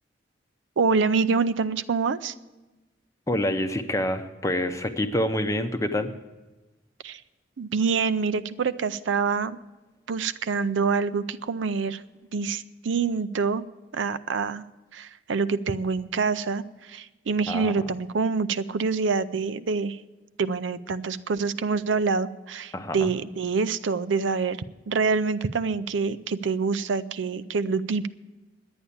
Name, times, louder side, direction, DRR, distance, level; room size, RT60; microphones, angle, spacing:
voice 1, 0.8-2.3 7.0-7.2 7.6-9.6 10.1-12.0 12.3-13.6 13.9-14.6 14.9-20.0 20.4-28.1, right 4 dB, 85° right, 14 dB, 0.5 m, -26 dB
voice 2, 3.3-6.1 17.5-17.8 22.7-23.1, left 1 dB, 15° left, 8 dB, 0.7 m, -27 dB
11.0 x 8.8 x 8.5 m, 1.1 s
head